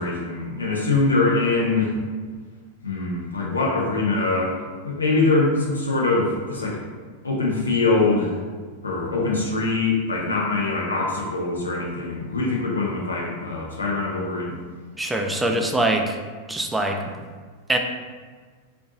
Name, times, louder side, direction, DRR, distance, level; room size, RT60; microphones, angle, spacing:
voice 1, 0.0-1.9 2.8-6.8 7.2-8.3 8.8-14.6, left 3 dB, 75° left, -3 dB, 0.8 m, -23 dB
voice 2, 14.9-16.2 16.5-17.1 17.7-17.8, right 1 dB, 10° right, 3 dB, 0.4 m, -23 dB
4.4 x 2.6 x 2.8 m, 1.5 s
figure-of-eight pair, 90°, 0 cm